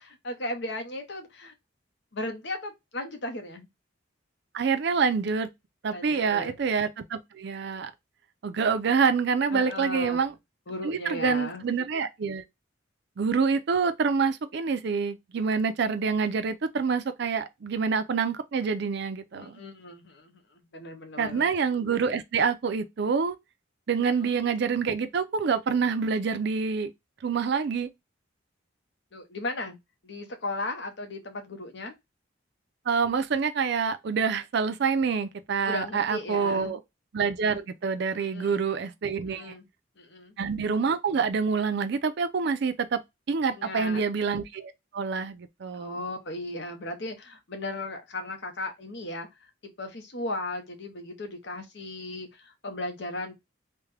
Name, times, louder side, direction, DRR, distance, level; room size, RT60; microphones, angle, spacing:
voice 1, 0.0-1.5 2.1-3.7 5.9-6.5 9.5-10.2 10.7-11.7 19.3-20.4 20.7-21.4 24.1-24.4 29.1-29.8 30.0-31.9 35.6-36.7 38.2-38.7 39.3-39.7 40.0-40.3 43.5-44.0 45.7-49.3 49.8-53.3, left 2 dB, 60° left, 0.9 m, -36 dB
voice 2, 4.5-5.5 5.8-7.9 8.4-10.3 10.8-12.4 13.2-19.6 21.2-23.4 23.9-26.9 27.2-27.9 32.9-36.8 37.1-39.6 40.4-43.0 43.3-46.0, right 5 dB, 60° right, 0.4 m, -27 dB
3.5 x 2.2 x 3.2 m
head